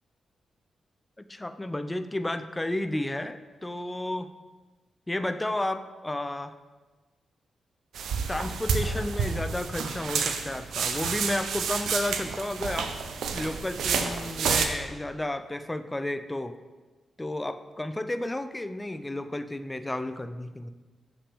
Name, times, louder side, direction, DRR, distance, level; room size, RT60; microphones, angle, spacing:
voice 1, 1.2-4.3 5.1-6.5 8.3-12.9 13.3-16.6 17.2-20.7, left 1 dB, 15° left, 10 dB, 0.4 m, -32 dB
sound 1, 7.9-14.7, right 5 dB, 90° right, 0.5 m, -29 dB
7.1 x 5.8 x 3.4 m, 1.3 s
cardioid pair, 75°, 0 cm